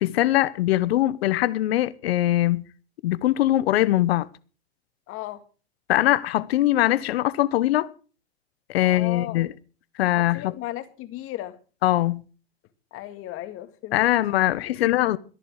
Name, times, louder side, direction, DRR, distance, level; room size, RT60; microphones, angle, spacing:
voice 1, 0.0-2.6 3.0-4.3 5.9-7.9 8.7-9.5 10.0-10.5 11.8-12.2 13.9-15.2, left 15 dB, 70° left, 1.1 m, -22 dB
voice 2, 5.1-5.4 8.8-9.5 10.2-11.6 12.9-14.1 14.6-15.0, left 15 dB, 40° left, 2.2 m, -36 dB
14.0 x 11.0 x 6.4 m
hypercardioid pair, 110°, 32 cm